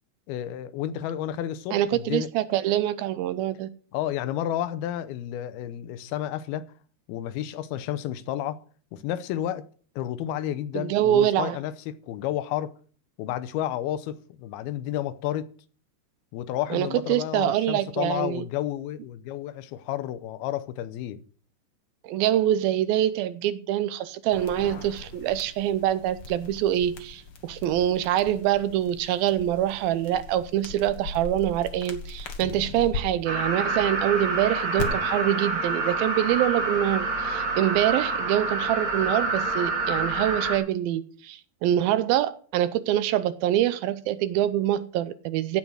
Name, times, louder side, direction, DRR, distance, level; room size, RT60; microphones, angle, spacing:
voice 1, 0.3-2.3 3.9-6.7 7.1-8.6 8.9-9.6 10.0-12.7 13.2-15.5 16.3-21.2, left 12 dB, 80° left, 2.7 m, -31 dB
voice 2, 1.7-3.7 10.8-11.6 16.7-18.5 22.0-45.6, right 12 dB, 80° right, 2.4 m, -25 dB
sound 1, 24.3-33.0 34.8-34.9, left 5 dB, 55° left, 1.6 m, -39 dB
sound 2, 33.3-40.6, right 3 dB, 35° right, 1.7 m, -27 dB
16.0 x 5.6 x 6.2 m
omnidirectional pair, 4.5 m